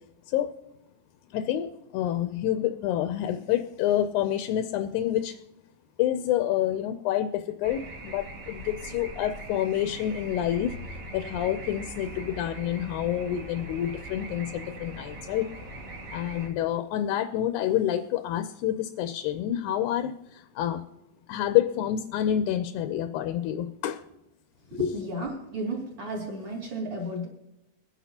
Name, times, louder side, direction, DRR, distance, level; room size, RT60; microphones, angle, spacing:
voice 1, 1.3-5.4 6.0-10.8 11.1-15.5 16.1-20.8 21.3-24.0, left 11 dB, 80° left, 8 dB, 2.0 m, -28 dB
sound 1, 7.6-16.5, right 1 dB, 90° right, 3.6 m, -41 dB
voice 2, 24.7-27.3, left 1 dB, 40° right, -2 dB, 3.2 m, -32 dB
23.0 x 10.0 x 2.8 m, 0.90 s
omnidirectional pair, 3.6 m